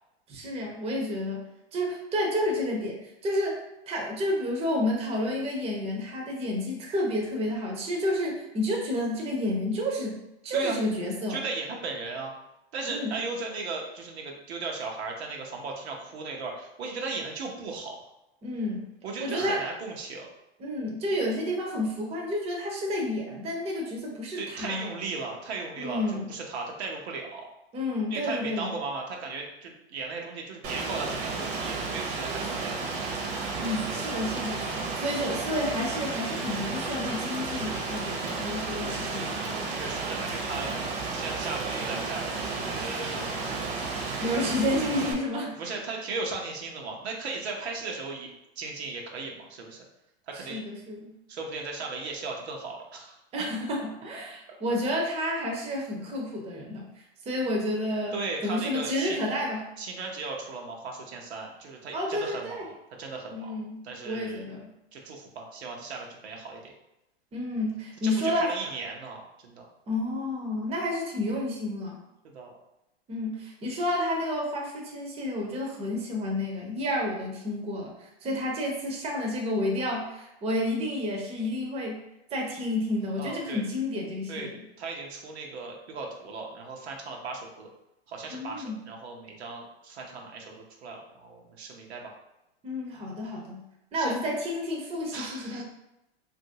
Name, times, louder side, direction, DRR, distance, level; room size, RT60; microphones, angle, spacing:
voice 1, 0.3-1.4 1.7-3.6 3.9-11.4 12.9-13.2 18.4-18.9 19.2-19.6 20.6-24.9 25.8-26.3 27.7-28.8 33.6-39.4 44.2-45.5 50.3-51.1 53.3-59.6 61.9-62.7 63.3-64.7 67.3-68.5 69.9-72.0 73.1-82.0 82.3-84.6 88.3-88.8 92.6-93.6 93.9-95.6, left 1 dB, 20° right, 0 dB, 0.6 m, -30 dB
voice 2, 11.3-12.3 12.7-18.1 19.0-20.3 24.4-26.0 26.3-27.5 28.1-33.0 39.7-40.7 41.1-43.4 43.8-44.5 45.6-48.3 48.6-49.8 50.3-50.6 51.3-53.2 58.1-59.2 59.8-62.7 63.0-63.5 63.8-64.4 64.9-66.7 68.0-69.7 72.2-72.5 83.2-83.6 84.3-84.5 84.8-87.7 88.1-92.1 94.0-94.2 95.1-95.6, right 3 dB, 85° right, 0 dB, 0.7 m, -37 dB
Rain, 30.6-45.1, right 3 dB, 50° right, 0.8 m, -32 dB
2.9 x 2.5 x 2.7 m, 0.90 s
hypercardioid pair, 120°, 32 cm